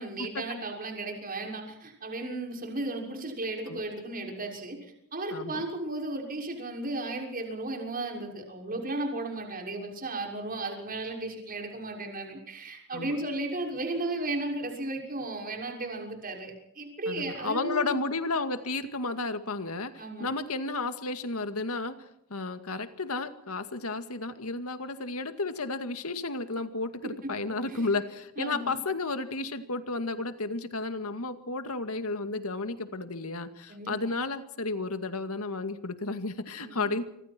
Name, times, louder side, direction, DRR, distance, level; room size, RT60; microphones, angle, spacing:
voice 1, 0.0-4.8 5.1-18.0 20.0-20.3 27.7-27.9 28.4-28.7 33.7-33.9 36.6-36.9, right 2 dB, 40° right, 2 dB, 6.4 m, -35 dB
voice 2, 5.3-5.6 12.9-13.2 17.1-22.0 22.3-37.0, left 3 dB, 70° left, 9 dB, 2.2 m, -32 dB
26.0 x 26.0 x 4.6 m, 0.76 s
head